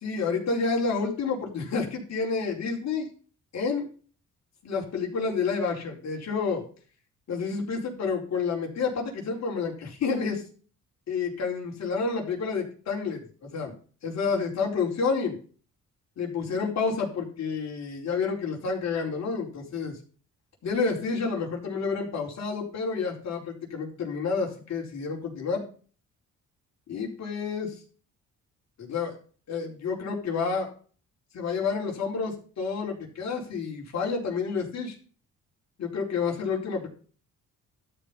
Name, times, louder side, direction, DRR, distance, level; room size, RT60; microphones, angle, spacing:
voice 1, 0.0-3.1 3.5-3.9 4.6-6.6 7.3-10.4 11.1-13.2 13.5-13.7 14.0-15.4 16.2-20.0 20.6-25.6 26.9-27.7 28.8-29.2 29.5-30.7 31.3-35.0 35.8-36.9, left 5 dB, 60° left, -1 dB, 4.5 m, -29 dB
13.0 x 5.4 x 5.7 m, 0.40 s
cardioid pair, 90°, 30 cm